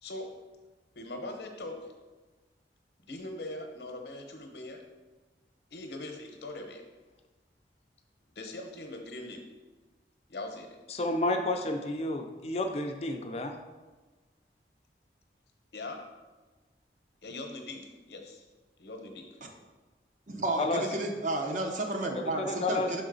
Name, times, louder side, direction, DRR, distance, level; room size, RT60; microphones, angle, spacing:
voice 1, 0.9-1.9 3.0-4.8 5.7-6.8 8.4-9.4 10.3-10.8 15.7-16.0 17.2-18.4 18.8-19.3, left 2 dB, 75° left, 3 dB, 0.8 m, -41 dB
voice 2, 10.9-13.5 20.6-20.8 22.1-23.0, left 2 dB, 35° left, 4 dB, 0.4 m, -31 dB
voice 3, 20.3-23.0, right 2 dB, 45° right, 2 dB, 0.7 m, -32 dB
6.3 x 3.9 x 3.9 m, 1.3 s
head